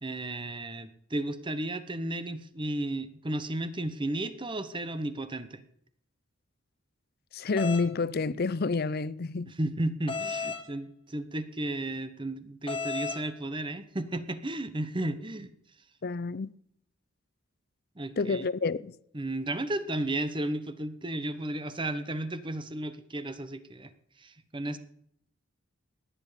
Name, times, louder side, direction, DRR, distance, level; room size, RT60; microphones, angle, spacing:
voice 1, 0.0-5.6 9.5-15.5 18.0-18.5 19.1-23.9 24.2-24.8, right 1 dB, 25° right, 1.1 m, -34 dB
voice 2, 7.3-9.5 16.0-16.5 18.2-18.9, left 4 dB, 50° left, 0.6 m, -29 dB
sound 1, 7.6-7.9 10.1-10.6 12.7-13.2, left 5 dB, 25° left, 1.9 m, -33 dB
18.5 x 9.6 x 5.2 m
head